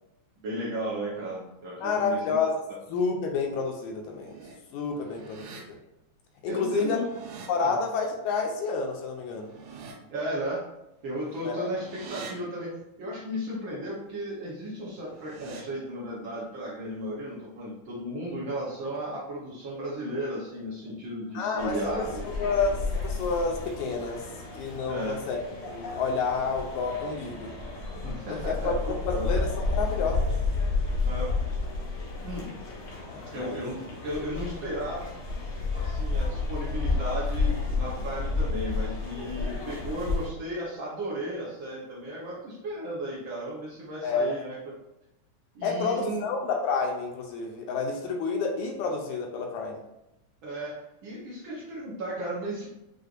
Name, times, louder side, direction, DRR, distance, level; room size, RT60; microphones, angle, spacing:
voice 1, 0.4-2.3 6.5-7.0 7.6-7.7 10.1-10.6 11.0-12.7 13.0-22.2 24.9-25.1 28.0-29.2 31.0-31.3 32.2-32.5 33.3-35.1 35.7-44.6 45.5-46.2 50.4-52.7, right 1 dB, 70° right, -6 dB, 1.1 m, -34 dB
voice 2, 1.8-2.6 2.9-4.3 4.7-5.6 6.4-7.0 7.5-9.5 11.4-11.7 21.3-24.2 24.6-25.4 25.7-27.5 28.3-28.7 29.1-30.3 33.1-33.5 44.0-44.4 45.6-49.8, left 4 dB, 80° left, 2 dB, 1.9 m, -29 dB
sound 1, 4.0-4.6 5.0-5.6 6.7-7.5 9.3-9.9 11.2-12.3 14.8-15.6, right 5 dB, 90° right, 2.1 m, -45 dB
sound 2, 21.6-40.3, left 3 dB, 65° left, 1.2 m, -31 dB
6.2 x 2.5 x 2.5 m, 0.90 s
omnidirectional pair, 3.5 m